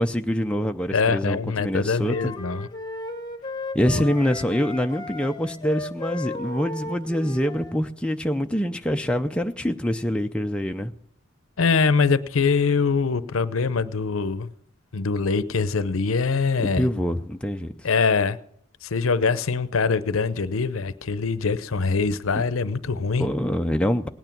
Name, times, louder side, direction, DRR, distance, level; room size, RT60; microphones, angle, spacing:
voice 1, 0.0-2.3 3.7-10.9 16.8-17.7 23.2-24.1, equal, 5° left, 5 dB, 0.5 m, -25 dB
voice 2, 0.9-2.7 3.9-4.1 11.6-14.5 14.9-16.9 17.8-18.4 18.8-23.3, left 4 dB, 80° left, 15 dB, 0.7 m, -23 dB
sound 1, 2.0-7.8, left 2 dB, 20° left, 1.0 m, -36 dB
18.0 x 9.3 x 6.0 m, 0.67 s
head